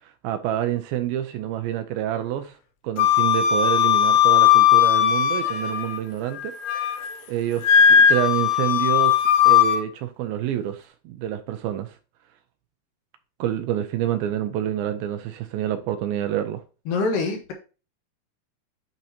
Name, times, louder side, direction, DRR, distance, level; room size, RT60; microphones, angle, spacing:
voice 1, 0.2-2.6 2.8-12.0 13.4-16.6, right 11 dB, 80° right, 2.3 m, -28 dB
Wind instrument woodwind instrument, 3.0-6.0 6.4-7.1 7.6-9.8, left 9 dB, 90° left, 2.9 m, -18 dB
voice 2, 16.9-17.5, left 3 dB, 70° left, 2.3 m, -24 dB
10.5 x 4.4 x 2.8 m
omnidirectional pair, 4.5 m